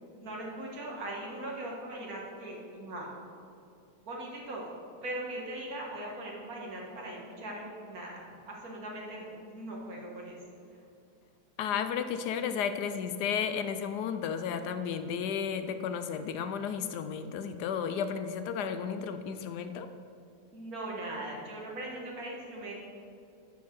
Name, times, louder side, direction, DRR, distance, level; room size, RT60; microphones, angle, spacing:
voice 1, 0.2-3.1 4.1-4.7 5.0-10.4 20.5-22.7, right 1 dB, 60° right, -3 dB, 2.2 m, -40 dB
voice 2, 11.6-19.9, left 7 dB, 80° left, 10 dB, 1.1 m, -33 dB
12.5 x 4.5 x 6.1 m, 2.6 s
omnidirectional pair, 1.8 m